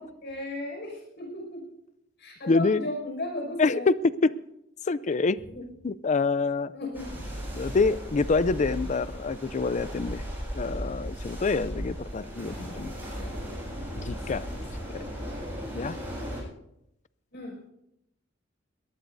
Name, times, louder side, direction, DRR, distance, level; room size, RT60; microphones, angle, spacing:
voice 1, 0.0-1.7 2.2-3.9 5.5-5.6 6.7-7.2 14.2-15.1 17.3-17.6, left 1 dB, 60° left, 5.9 m, -36 dB
voice 2, 2.5-2.8 3.6-3.9 4.2-4.4 4.9-5.4 5.8-6.7 7.5-10.2 10.5-12.9 13.2-13.3 14.0-14.4 14.9-15.0 15.7-16.0, left 4 dB, 40° left, 0.4 m, -26 dB
sound 1, 6.9-16.4, equal, 10° right, 7.7 m, -36 dB
22.0 x 18.5 x 2.7 m
head